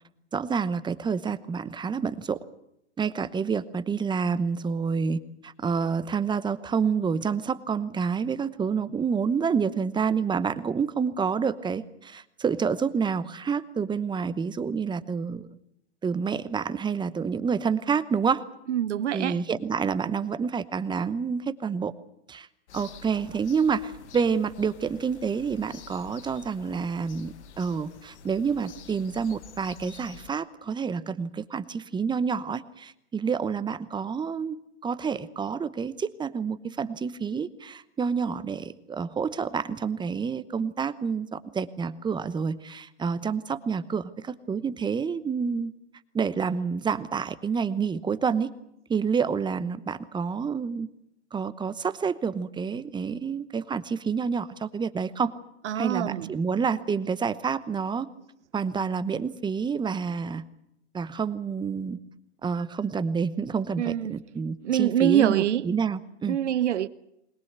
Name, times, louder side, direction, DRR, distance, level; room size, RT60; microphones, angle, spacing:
voice 1, 0.3-2.4 3.0-15.6 16.0-18.4 19.1-21.9 22.3-22.5 22.7-45.7 46.1-48.5 48.9-50.9 51.3-55.3 55.7-58.1 58.5-60.4 60.9-62.0 62.4-66.4, right 6 dB, 15° right, 0.9 m, -28 dB
voice 2, 18.7-19.4 55.6-56.3 63.8-64.2 64.6-65.7 66.3-66.9, right 10 dB, 90° right, 0.9 m, -25 dB
sound 1, 22.7-30.3, left 6 dB, 75° left, 1.8 m, -49 dB
21.5 x 20.0 x 8.1 m
hypercardioid pair, 125°, 34 cm